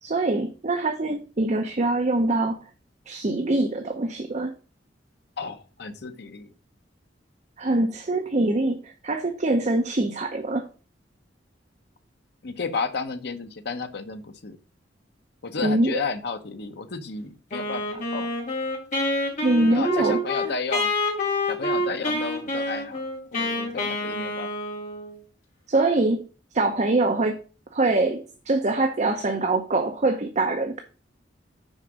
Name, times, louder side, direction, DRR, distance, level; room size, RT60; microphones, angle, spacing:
voice 1, 0.0-2.6 3.1-4.5 7.6-10.7 15.6-16.0 19.4-20.5 25.7-26.3 26.5-27.4 27.7-30.8, right 2 dB, 40° right, 0.7 m, -24 dB
voice 2, 5.4-6.5 12.4-14.6 15.4-18.3 19.7-20.9 21.5-23.1 23.3-24.5, left 4 dB, 65° left, 0.9 m, -32 dB
Wind instrument woodwind instrument, 17.5-25.2, left 1 dB, 45° left, 3.7 m, -27 dB
6.5 x 5.0 x 6.2 m
head